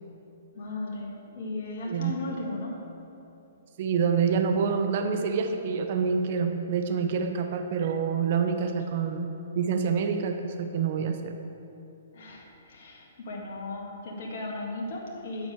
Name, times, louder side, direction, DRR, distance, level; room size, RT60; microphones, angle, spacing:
voice 1, 0.5-2.8 12.1-15.5, left 2 dB, 60° left, -2 dB, 1.9 m, -36 dB
voice 2, 1.9-2.2 3.8-9.3 9.6-11.3, right 6 dB, 50° right, 6 dB, 0.7 m, -27 dB
9.1 x 5.2 x 8.0 m, 2.9 s
hypercardioid pair, 130°, 0 cm